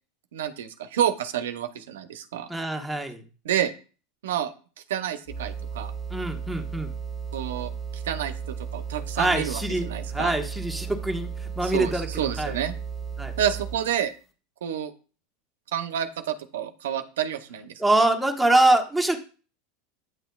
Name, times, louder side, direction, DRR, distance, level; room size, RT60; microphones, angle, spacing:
voice 1, 0.3-2.5 3.4-3.7 4.2-4.5 4.9-5.9 7.3-10.3 11.6-12.7 13.4-14.1 14.6-14.9 15.7-17.8, right 10 dB, 90° right, 10 dB, 0.6 m, -29 dB
voice 2, 2.5-3.2 6.1-6.9 9.2-12.6 13.2-13.3 17.8-19.2, right 2 dB, ahead, 2 dB, 1.1 m, -24 dB
sound 1, 5.3-14.0, right 7 dB, 30° left, 1.3 m, -35 dB
9.2 x 6.2 x 2.3 m, 0.36 s
supercardioid pair, 125°, 0 cm